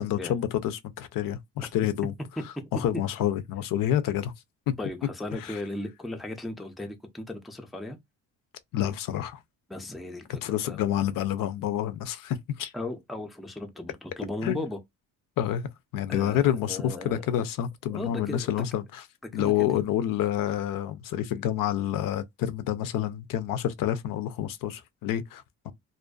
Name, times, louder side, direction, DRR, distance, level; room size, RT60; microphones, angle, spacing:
voice 1, 0.0-2.1 2.7-4.3 4.7-4.8 5.3-5.6 8.7-9.4 10.4-12.7 14.4-14.6 15.4-15.7 15.9-19.0 19.3-25.7, left 11 dB, 65° left, 0.5 m, -28 dB
voice 2, 4.8-8.0 9.7-10.8 12.7-14.8 16.1-17.3 17.9-18.6 19.2-19.8, left 1 dB, ahead, 0.4 m, -36 dB
2.5 x 2.2 x 2.3 m
cardioid pair, 105°, 35 cm